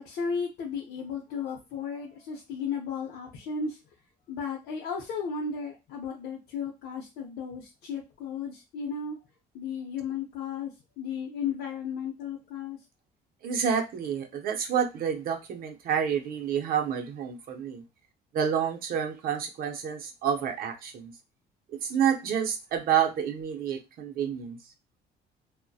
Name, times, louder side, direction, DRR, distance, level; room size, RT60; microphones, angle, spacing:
voice 1, 0.0-3.8 4.3-9.2 9.5-12.8, left 6 dB, 75° left, -1 dB, 0.6 m, -34 dB
voice 2, 13.4-17.8 18.3-21.1 21.8-24.6, right 8 dB, 60° right, 4 dB, 0.6 m, -29 dB
2.6 x 2.1 x 2.2 m, 0.24 s
cardioid pair, 110°, 17 cm